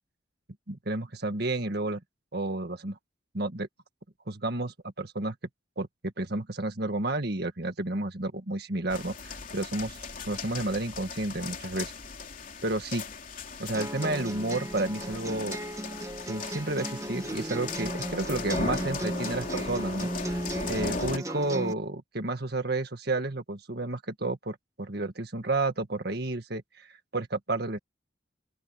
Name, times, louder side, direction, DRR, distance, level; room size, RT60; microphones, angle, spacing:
voice 1, 0.7-2.0 2.3-3.0 3.3-3.7 4.3-5.3 5.8-10.0 10.3-11.9 12.6-13.0 13.6-15.6 16.3-20.1 20.7-27.8, right 2 dB, 55° right, 1.8 m, -31 dB
sound 1, 8.9-21.2, left 3 dB, 45° left, 3.3 m, -38 dB
sound 2, 13.7-21.7, right 1 dB, 15° right, 1.5 m, -35 dB
open air
head